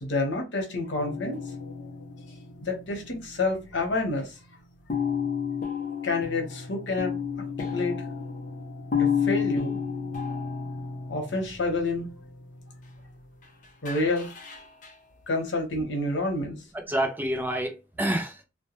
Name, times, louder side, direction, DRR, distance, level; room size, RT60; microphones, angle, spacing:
voice 1, 0.0-1.4 2.6-4.4 6.0-7.1 7.7-8.0 9.0-9.8 11.1-12.1 13.8-14.3 15.3-16.6, left 2 dB, 80° left, 0.9 m, -28 dB
sound 1, 1.0-3.9 4.2-4.3 4.9-13.4 13.9-14.9, left 6 dB, 45° left, 0.5 m, -32 dB
voice 2, 16.7-18.5, right 1 dB, 10° right, 0.4 m, -28 dB
2.2 x 2.2 x 2.9 m
head